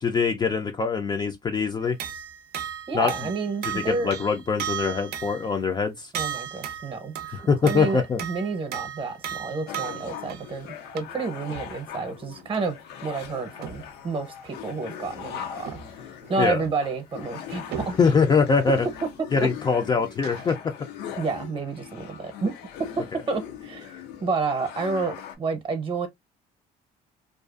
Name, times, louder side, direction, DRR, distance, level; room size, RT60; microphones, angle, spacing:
voice 1, 0.0-2.0 2.9-3.1 3.6-6.1 7.3-8.2 16.4-16.6 18.0-18.9 19.3-20.6, left 5 dB, 25° left, 0.4 m, -23 dB
sound 1, 1.8-5.6 6.1-10.6 11.0-11.2 11.5-11.7 12.2-12.6 13.6-13.9 14.4-14.5 15.7-15.9 16.2-16.7 17.7-18.1 19.3-19.5 19.9-20.5, right 9 dB, 70° right, 0.5 m, -36 dB
voice 2, 2.9-4.1 6.1-7.2 7.6-10.7 10.9-12.8 13.0-15.8 16.3-18.0 19.4-19.5 21.2-22.6 23.0-26.1, right 4 dB, 30° right, 0.8 m, -30 dB
sound 2, 9.7-25.4, left 9 dB, 85° left, 0.5 m, -40 dB
2.5 x 2.2 x 2.3 m
cardioid pair, 110°, 17 cm